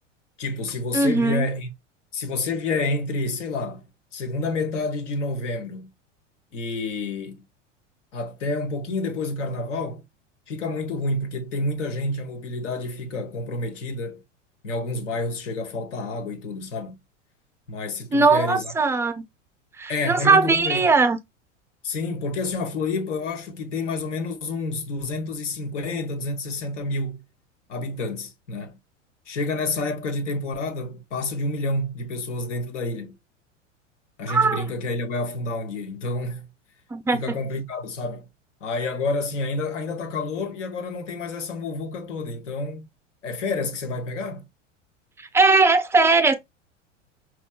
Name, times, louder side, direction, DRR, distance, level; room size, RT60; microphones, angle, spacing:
voice 1, 0.4-1.7 2.1-3.8 4.1-5.9 6.5-7.4 8.1-10.0 10.5-14.2 14.6-17.0 17.7-18.7 19.9-20.9 21.8-27.2 27.7-28.8 29.3-33.1 34.2-36.5 37.1-38.2 38.6-42.9 43.2-44.4, left 2 dB, 70° left, 1.4 m, -29 dB
voice 2, 0.9-1.5 18.1-19.2 19.8-21.2 34.3-34.6 36.9-37.4 45.2-46.3, right 3 dB, 5° right, 0.4 m, -19 dB
5.5 x 2.3 x 2.3 m
figure-of-eight pair, 85°, 37 cm